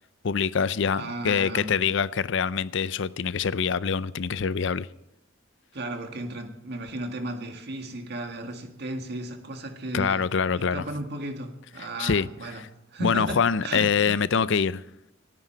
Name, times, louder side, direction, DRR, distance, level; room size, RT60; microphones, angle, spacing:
voice 1, 0.2-4.9 9.9-10.9 11.8-12.3 12.6-12.7 13.0-14.8, left 6 dB, 65° left, 0.5 m, -25 dB
voice 2, 1.0-1.7 5.7-10.2 10.6-12.6 12.9-14.2, right 1 dB, 55° right, 1.9 m, -35 dB
28.5 x 9.7 x 4.5 m
head